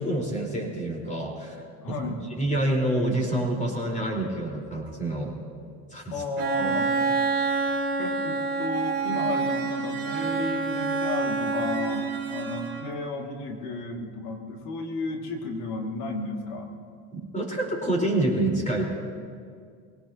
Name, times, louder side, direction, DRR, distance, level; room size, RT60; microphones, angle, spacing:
voice 1, 0.0-2.0 2.4-5.3 5.9-6.2 6.6-6.8 17.1-18.9, right 1 dB, 15° left, 0 dB, 4.2 m, -27 dB
voice 2, 1.8-2.2 6.1-6.9 8.0-16.7, left 3 dB, 85° left, 2 dB, 2.3 m, -33 dB
Bowed string instrument, 6.4-13.1, right 4 dB, 35° right, 3.5 m, -27 dB
22.5 x 18.0 x 2.9 m, 2.1 s
supercardioid pair, 100°, 44 cm